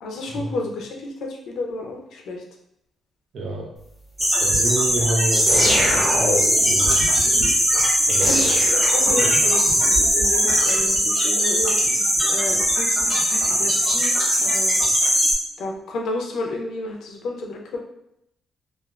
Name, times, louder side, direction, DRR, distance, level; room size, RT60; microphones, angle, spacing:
voice 1, 0.0-2.4 7.1-7.5 8.2-14.8 15.6-17.8, left 2 dB, 75° left, 0 dB, 0.6 m, -31 dB
voice 2, 3.3-3.7 4.4-7.0 8.0-8.3, right 1 dB, 55° right, 0 dB, 0.6 m, -28 dB
sound 1, 4.2-15.3, equal, 10° right, 1.2 m, -19 dB
sound 2, 5.5-6.7 8.2-9.5, left 1 dB, 10° left, 0.7 m, -24 dB
3.3 x 2.4 x 2.4 m, 0.80 s
cardioid pair, 170°, 0 cm